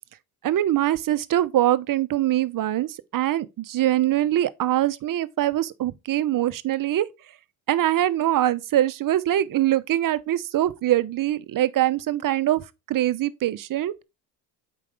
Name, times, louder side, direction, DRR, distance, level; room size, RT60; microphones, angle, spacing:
voice 1, 0.4-7.1 7.7-13.9, right 13 dB, 40° right, 0.8 m, -23 dB
8.4 x 5.1 x 3.4 m
hypercardioid pair, 75°, 49 cm